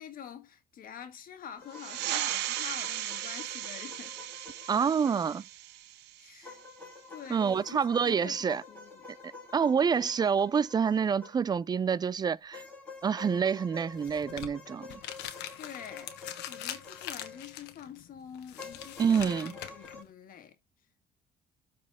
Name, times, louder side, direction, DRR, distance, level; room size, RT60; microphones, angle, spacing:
voice 1, 0.0-4.2 6.2-6.6 7.1-9.1 15.3-20.5, left 8 dB, 55° left, 1.7 m, -46 dB
sound 1, 1.6-5.5 6.4-11.7 12.5-17.8 18.6-20.0, left 4 dB, 10° left, 4.2 m, -49 dB
sound 2, 1.7-6.8, right 13 dB, 90° right, 0.9 m, -37 dB
voice 2, 4.7-5.4 7.3-8.6 9.5-12.6 13.0-14.9 19.0-19.5, right 6 dB, 25° right, 0.4 m, -27 dB
sound 3, 13.9-20.1, left 11 dB, 85° left, 1.1 m, -43 dB
13.0 x 4.3 x 3.5 m
cardioid pair, 110°, 17 cm